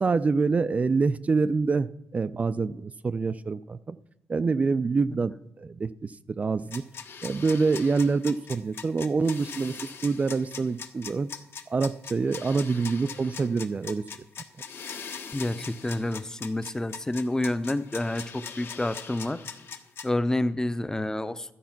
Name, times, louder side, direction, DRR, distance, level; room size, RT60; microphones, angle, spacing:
voice 1, 0.0-4.0 4.3-6.8 7.2-11.3 11.7-14.0, right 4 dB, 30° right, 14 dB, 0.4 m, -26 dB
sound 1, 6.7-20.1, left 6 dB, 60° left, 1.3 m, -41 dB
voice 2, 15.3-19.4 20.0-21.5, left 1 dB, 15° left, 13 dB, 0.7 m, -29 dB
12.5 x 9.1 x 5.9 m, 0.91 s
cardioid pair, 95°, 4 cm